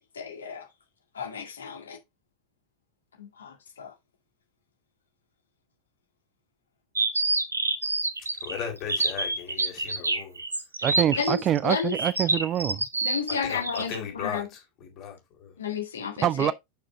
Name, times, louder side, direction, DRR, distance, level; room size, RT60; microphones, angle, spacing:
voice 1, 0.1-0.7 1.1-2.0 3.2-3.9 11.2-12.0 13.0-14.5 15.6-16.5, left 6 dB, 70° left, 2.0 m, -32 dB
sound 1, 6.9-14.0, right 2 dB, 80° right, 1.1 m, -27 dB
voice 2, 8.3-10.4 13.4-15.6, left 8 dB, 35° left, 3.8 m, -37 dB
voice 3, 10.8-12.8 16.2-16.5, right 11 dB, 30° right, 0.4 m, -25 dB
6.7 x 6.3 x 3.9 m
figure-of-eight pair, 90°, 0 cm